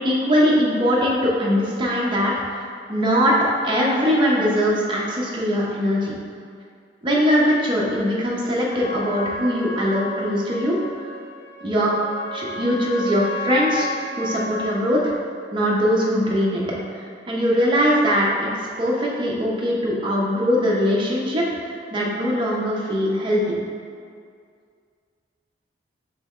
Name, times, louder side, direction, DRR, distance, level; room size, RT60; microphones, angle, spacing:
voice 1, 0.0-2.6 2.9-3.3 3.6-6.2 7.0-10.8 11.6-11.9 12.3-13.9 14.2-15.1 15.5-16.6 16.9-18.5 18.8-23.7, equal, 25° right, -4 dB, 0.5 m, -21 dB
Trumpet, 8.7-14.9, left 1 dB, 75° left, 0.8 m, -33 dB
3.4 x 3.0 x 3.5 m, 2.2 s
head